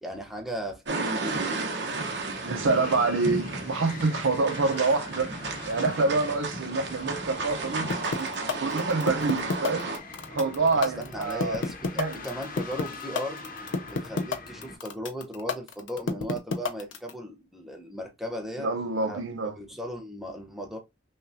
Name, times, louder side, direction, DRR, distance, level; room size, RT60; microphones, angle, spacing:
voice 1, 0.0-1.6 10.7-13.4 13.9-18.7 19.0-19.3 19.6-20.8, equal, ahead, 0.7 m, -37 dB
sound 1, 0.9-10.0, right 3 dB, 60° right, 0.9 m, -33 dB
sound 2, 1.9-14.8, left 3 dB, 45° left, 0.8 m, -43 dB
voice 2, 2.4-5.3 5.6-9.9 10.3-11.6 12.0-12.2 18.6-19.5, right 3 dB, 85° right, 0.7 m, -27 dB
sound 3, 7.9-17.1, left 4 dB, 70° left, 0.5 m, -29 dB
5.7 x 2.3 x 2.6 m
head